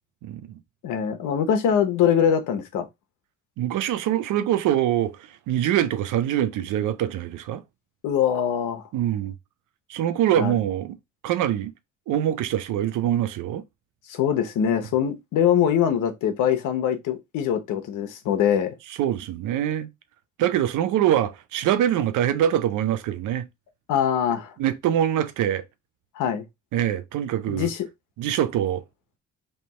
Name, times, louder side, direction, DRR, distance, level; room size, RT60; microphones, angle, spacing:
voice 1, 0.2-0.6 3.6-5.2 5.5-7.6 8.9-9.4 9.9-11.0 11.2-11.7 12.1-13.6 19.0-19.9 20.4-23.5 24.6-25.6 26.7-27.7 28.2-28.8, right 11 dB, 85° right, 0.7 m, -24 dB
voice 2, 0.8-2.9 8.0-8.8 10.4-10.6 14.1-18.8 23.9-24.5 26.1-26.4 27.5-27.9, left 8 dB, 85° left, 0.9 m, -23 dB
3.3 x 2.7 x 4.2 m
cardioid pair, 90°, 30 cm